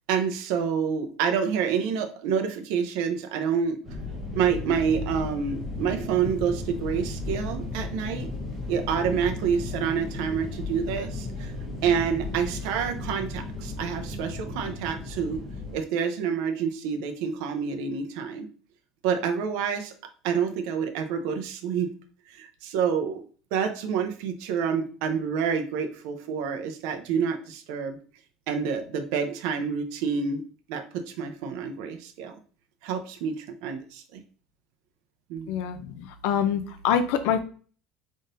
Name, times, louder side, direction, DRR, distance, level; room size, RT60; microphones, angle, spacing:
voice 1, 0.1-3.8 4.4-8.3 8.7-11.5 11.8-15.4 15.7-18.5 19.0-19.9 20.2-21.9 22.3-23.2 23.5-28.0 28.5-30.4 30.7-32.4 32.8-34.2 35.3-35.5, right 7 dB, 65° right, 5 dB, 0.6 m, -28 dB
sound 1, 3.8-15.8, left 2 dB, ahead, 1.6 m, -35 dB
voice 2, 35.5-37.4, left 8 dB, 65° left, 8 dB, 0.4 m, -25 dB
3.9 x 3.7 x 2.5 m, 0.40 s
cardioid pair, 175°, 0 cm